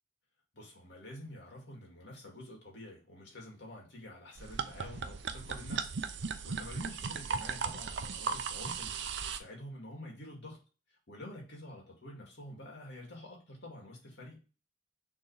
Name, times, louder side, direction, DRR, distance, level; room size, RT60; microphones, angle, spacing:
voice 1, 0.5-8.9 9.2-10.6 11.1-14.4, left 1 dB, 65° left, 2.4 m, -48 dB
sound 1, 4.4-9.4, right 5 dB, 65° right, 0.6 m, -37 dB
6.4 x 3.6 x 4.9 m
head